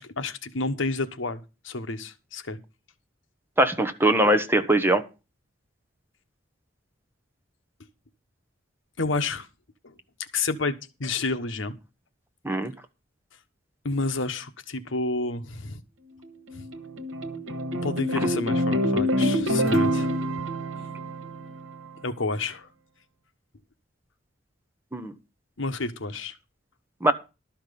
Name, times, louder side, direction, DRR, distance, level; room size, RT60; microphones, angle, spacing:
voice 1, 0.0-2.6 9.0-9.5 9.8-9.9 10.3-11.7 13.8-15.8 16.5-16.7 17.8-20.1 22.0-22.7 25.6-26.3, left 3 dB, 75° left, 1.2 m, -30 dB
voice 2, 3.6-5.0 12.4-12.7 24.9-25.1 27.0-27.1, right 1 dB, 10° right, 1.0 m, -21 dB
sound 1, 16.3-21.9, equal, 85° right, 1.6 m, -26 dB
12.5 x 5.9 x 6.8 m
head